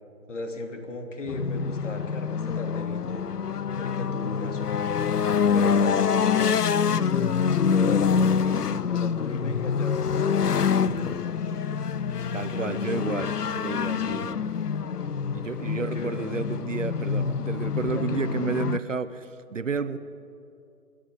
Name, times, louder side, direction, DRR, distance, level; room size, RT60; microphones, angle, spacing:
voice 1, 0.3-3.3 3.8-5.1 5.5-10.1 10.6-11.1 12.4-12.9 14.0-14.3 15.8-16.2 17.9-18.2, left 2 dB, 50° left, 5 dB, 3.0 m, -36 dB
sound 1, 1.3-18.8, left 6 dB, 85° left, 0.7 m, -26 dB
voice 2, 12.3-14.4 15.3-20.0, right 5 dB, 55° right, 13 dB, 1.0 m, -31 dB
27.5 x 11.5 x 10.0 m, 2.7 s
figure-of-eight pair, 160°, 45 cm